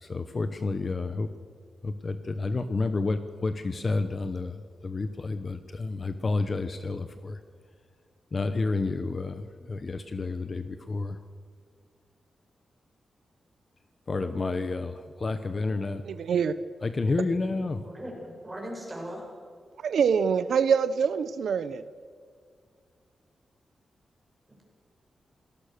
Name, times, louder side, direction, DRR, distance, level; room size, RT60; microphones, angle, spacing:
voice 1, 0.0-1.3 1.8-7.4 8.3-11.2 14.1-16.0 16.8-17.9, left 3 dB, 30° left, 10 dB, 1.0 m, -30 dB
voice 2, 16.1-16.5 19.8-21.8, right 6 dB, 80° right, 13 dB, 0.8 m, -25 dB
voice 3, 17.8-18.1 18.4-19.2, equal, 10° right, -2 dB, 7.6 m, -38 dB
28.5 x 19.0 x 6.7 m, 2.1 s
wide cardioid pair, 180°, 0 cm